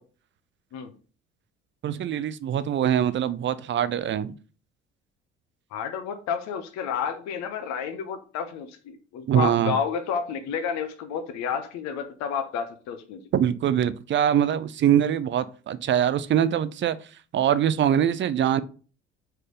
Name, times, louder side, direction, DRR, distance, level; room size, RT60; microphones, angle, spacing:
voice 1, 1.8-4.3 9.3-9.8 13.3-17.0 17.3-18.6, right 9 dB, 35° right, 0.6 m, -23 dB
voice 2, 5.7-13.2, left 7 dB, 55° left, 1.0 m, -30 dB
4.9 x 4.6 x 5.1 m
figure-of-eight pair, 50°, 34 cm